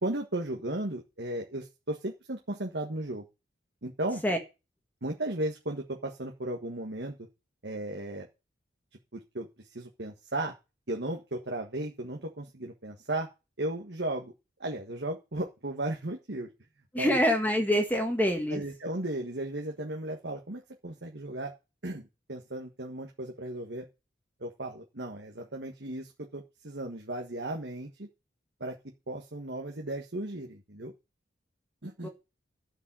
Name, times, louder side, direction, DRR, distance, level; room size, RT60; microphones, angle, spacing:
voice 1, 0.0-3.2 3.8-4.2 5.0-7.2 7.6-8.3 9.1-10.5 10.9-13.3 13.6-14.3 14.6-16.5 17.0-17.2 18.5-21.5 21.8-23.9 24.4-28.1 28.6-28.8 29.1-30.9 31.8-32.1, right 1 dB, 70° right, 1 dB, 1.6 m, -35 dB
voice 2, 16.9-18.6 32.0-32.1, equal, 10° left, 4 dB, 1.6 m, -25 dB
12.5 x 5.4 x 7.6 m, 0.28 s
head